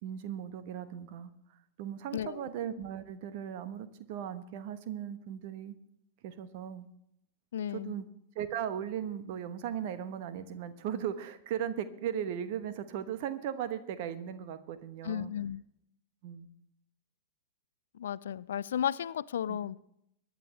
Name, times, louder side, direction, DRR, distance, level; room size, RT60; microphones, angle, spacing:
voice 1, 0.0-5.7 6.2-6.9 7.7-8.1 8.3-15.3 16.2-16.5 19.5-19.6, right 9 dB, 50° right, 11 dB, 1.2 m, -37 dB
voice 2, 2.1-2.4 7.5-8.0 15.0-15.6 18.0-19.8, left 9 dB, 65° left, 20 dB, 0.4 m, -34 dB
23.5 x 10.5 x 3.3 m, 0.75 s
figure-of-eight pair, 90°, 0 cm